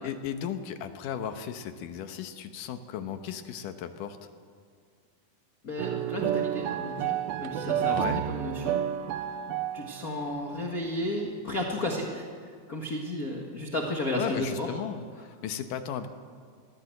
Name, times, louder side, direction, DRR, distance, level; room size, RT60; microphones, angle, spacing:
voice 1, 0.0-4.2 7.9-8.2 14.2-16.1, left 8 dB, 70° left, 8 dB, 2.5 m, -35 dB
voice 2, 5.6-8.0 8.3-8.8 9.7-12.2 12.7-14.7, left 1 dB, 40° left, 0 dB, 1.4 m, -33 dB
sound 1, 5.8-10.4, right 11 dB, 85° right, 2.5 m, -30 dB
22.0 x 15.5 x 7.8 m, 2.1 s
omnidirectional pair, 4.1 m